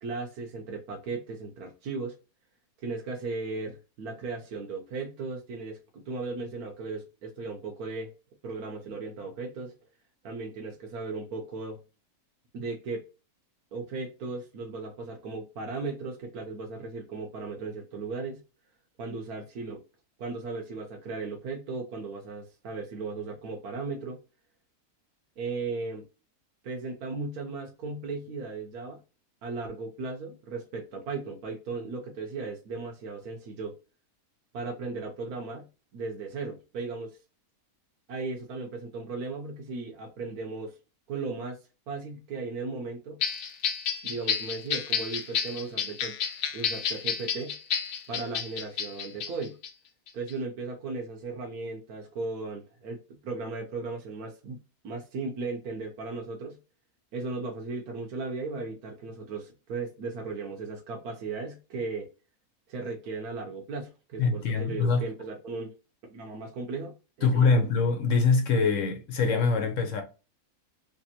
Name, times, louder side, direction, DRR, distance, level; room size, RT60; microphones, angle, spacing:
voice 1, 0.0-2.2 2.8-5.8 6.1-8.1 8.4-9.7 10.2-11.8 12.5-13.0 13.7-18.4 19.0-19.8 20.2-24.2 25.4-26.0 26.6-29.0 29.4-33.7 34.5-35.7 35.9-37.2 38.1-40.8 41.1-41.6 41.9-43.2 44.0-46.2 46.5-47.5 48.1-49.6 50.1-54.6 54.8-56.6 57.1-62.1 62.7-65.7 66.1-67.6, right 3 dB, 80° right, 1.3 m, -36 dB
sound 1, 43.2-49.7 50.1-50.3, left 7 dB, 90° left, 1.2 m, -31 dB
voice 2, 64.2-65.0 67.2-70.0, left 4 dB, 60° left, 1.1 m, -24 dB
3.4 x 3.4 x 2.7 m
omnidirectional pair, 1.6 m